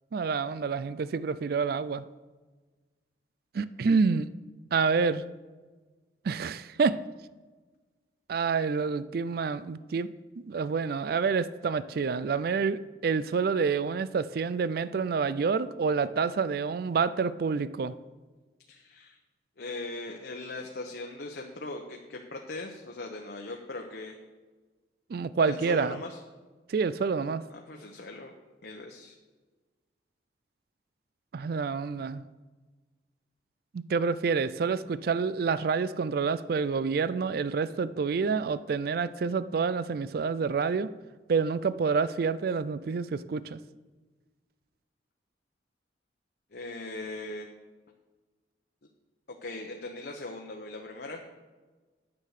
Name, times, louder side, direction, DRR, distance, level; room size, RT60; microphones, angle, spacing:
voice 1, 0.1-2.1 3.5-4.3 4.7-5.3 6.2-7.0 8.3-10.1 10.4-17.9 25.1-26.0 26.7-27.4 31.3-32.2 33.7-40.9 41.3-43.6, right 5 dB, 55° right, 16 dB, 0.4 m, -28 dB
voice 2, 18.7-19.2 19.6-24.2 25.4-26.2 27.5-28.3 28.6-29.1 36.7-36.8 46.5-47.5 49.4-51.2, left 2 dB, 60° left, 1 dB, 0.9 m, -39 dB
9.6 x 7.6 x 6.5 m, 1.3 s
head